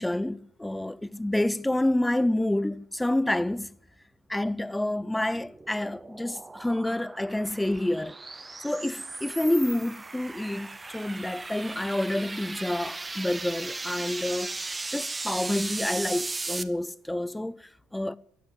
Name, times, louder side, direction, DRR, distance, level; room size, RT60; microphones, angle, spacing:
voice 1, 0.0-3.7 4.3-8.2 8.6-14.6 14.9-18.2, left 1 dB, 5° left, 0.4 m, -28 dB
sound 1, 5.0-16.6, right 3 dB, 15° right, 0.8 m, -37 dB
14.5 x 8.0 x 7.9 m
cardioid pair, 105°, 0 cm